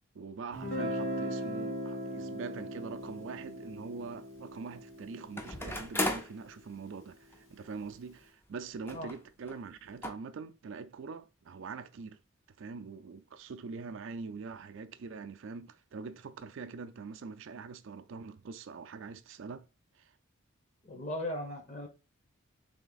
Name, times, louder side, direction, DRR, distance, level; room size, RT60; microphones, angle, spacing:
voice 1, 0.1-12.2 12.6-19.7 20.0-20.1, right 4 dB, 60° right, 0.4 m, -43 dB
Guitar, 0.5-6.3, equal, 60° left, 2.1 m, -39 dB
sound 1, 3.0-3.1 5.4-6.4 7.3-7.4 7.7-7.8 8.9-9.2 9.5-9.6 10.0-10.1, left 1 dB, 10° left, 0.4 m, -35 dB
voice 2, 20.8-21.9, left 1 dB, 35° left, 0.8 m, -37 dB
3.5 x 3.3 x 3.9 m
head